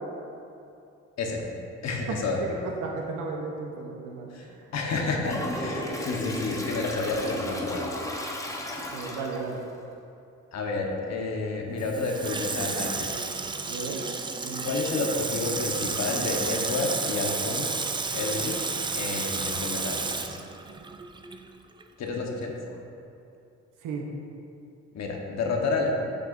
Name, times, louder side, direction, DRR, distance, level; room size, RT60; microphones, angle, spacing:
voice 1, 1.8-2.4 4.3-7.9 10.5-13.2 14.6-17.9 18.1-18.6 18.9-20.3 22.0-22.6 24.9-25.9, left 3 dB, 60° left, 1 dB, 1.0 m, -30 dB
voice 2, 2.6-4.7 8.9-9.6 13.6-14.0 14.4-14.7 23.8-24.1, right 4 dB, 85° right, 1 dB, 0.8 m, -35 dB
Toilet flush, 5.2-9.6, left 1 dB, 10° left, 0.8 m, -34 dB
Water tap faucet / Sink (filling or washing), 11.8-21.5 21.8-21.9, right 4 dB, 15° right, 0.3 m, -31 dB
8.0 x 6.5 x 2.5 m, 2.7 s
cardioid pair, 90°, 30 cm